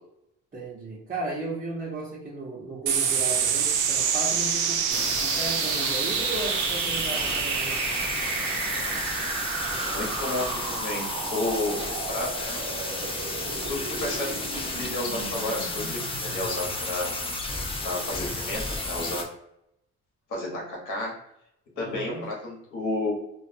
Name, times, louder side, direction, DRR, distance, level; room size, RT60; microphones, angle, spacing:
voice 1, 0.5-7.8 21.8-22.2, right 2 dB, 25° right, -7 dB, 0.9 m, -35 dB
sound 1, 2.9-17.7, right 7 dB, 85° right, 0.5 m, -29 dB
sound 2, 4.9-19.2, left 2 dB, 20° left, 0.5 m, -32 dB
voice 2, 9.9-11.0 11.3-12.3 13.7-14.3 14.8-17.1 17.8-19.2 20.3-21.1 21.8-23.1, left 2 dB, 80° left, -2 dB, 1.1 m, -31 dB
2.5 x 2.3 x 2.6 m, 0.79 s
cardioid pair, 90°, 30 cm